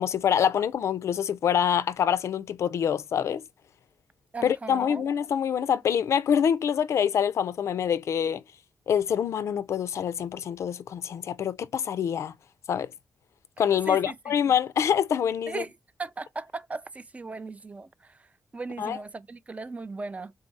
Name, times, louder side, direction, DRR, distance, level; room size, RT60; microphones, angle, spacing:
voice 1, 0.0-3.4 4.4-8.4 8.9-12.3 12.7-12.9 13.6-15.6 18.8-19.0, left 8 dB, 75° left, 0.3 m, -25 dB
voice 2, 4.3-5.0 13.9-14.3 15.5-15.7 16.0-18.3 18.5-20.3, right 3 dB, 30° right, 0.3 m, -37 dB
3.8 x 2.4 x 3.8 m
cardioid pair, 65°, 5 cm